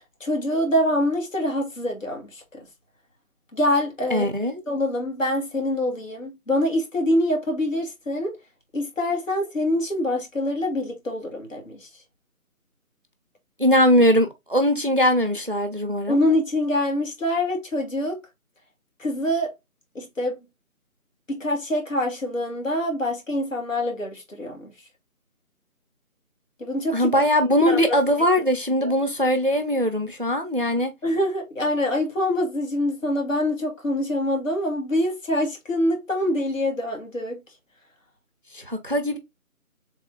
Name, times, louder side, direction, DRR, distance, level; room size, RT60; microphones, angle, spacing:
voice 1, 0.2-2.4 3.5-4.3 4.7-8.3 8.7-11.9 16.1-18.2 19.0-19.5 20.0-20.4 21.3-24.7 26.6-27.1 27.7-27.8 28.8-28.9 31.0-37.4, left 1 dB, 60° left, 2.1 m, -25 dB
voice 2, 4.1-4.6 13.6-16.2 26.9-30.9 38.5-39.2, equal, 40° right, 0.5 m, -21 dB
3.6 x 3.2 x 3.7 m
figure-of-eight pair, 165°, 44 cm